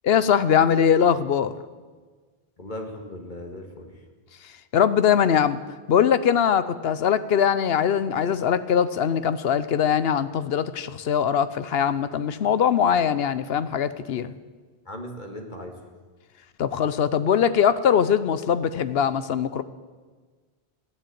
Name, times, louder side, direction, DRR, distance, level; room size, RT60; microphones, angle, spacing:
voice 1, 0.0-1.5 4.7-5.6 5.9-14.3 16.6-19.6, left 8 dB, 70° left, 14 dB, 0.9 m, -21 dB
voice 2, 2.6-3.9 14.9-15.8, left 1 dB, 50° left, 2 dB, 2.0 m, -37 dB
14.5 x 10.5 x 8.6 m, 1.4 s
omnidirectional pair, 1.1 m